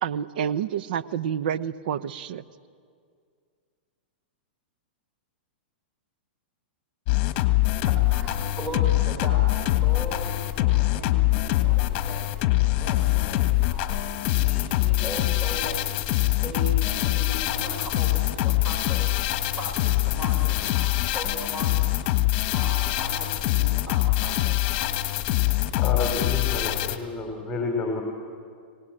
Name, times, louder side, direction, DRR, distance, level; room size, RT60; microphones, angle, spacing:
voice 1, 0.0-2.4, right 9 dB, 65° right, 14 dB, 0.9 m, -28 dB
sound 1, 7.1-27.0, left 16 dB, 40° left, 1.5 m, -24 dB
voice 2, 7.8-12.3 12.7-16.0 16.4-19.1 19.5-21.9 22.5-25.0, equal, 20° right, 1 dB, 3.9 m, -38 dB
voice 3, 25.8-28.0, left 3 dB, 20° left, 1 dB, 3.7 m, -29 dB
26.0 x 18.0 x 8.8 m, 2.2 s
hypercardioid pair, 135°, 6 cm